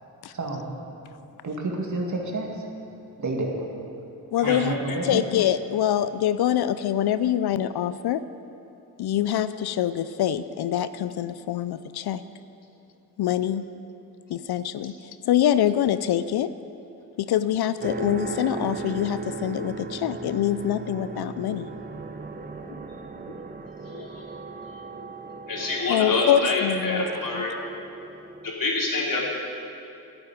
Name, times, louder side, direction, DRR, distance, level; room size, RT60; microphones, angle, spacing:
voice 1, 0.3-0.7 1.4-2.7 3.2-3.5 4.4-5.2, right 2 dB, 45° right, 0 dB, 2.3 m, -29 dB
voice 2, 4.3-8.2 9.0-12.2 13.2-13.6 14.3-16.5 17.2-21.7 25.9-27.1 27.3-27.4, left 11 dB, 70° left, 14 dB, 0.5 m, -25 dB
sound 1, 17.8-28.5, right 4 dB, 25° right, 0.9 m, -37 dB
voice 3, 23.8-24.2 25.5-27.5 28.4-29.2, left 2 dB, 55° left, -2 dB, 3.2 m, -27 dB
11.5 x 7.4 x 9.3 m, 2.7 s
cardioid pair, 65°, 40 cm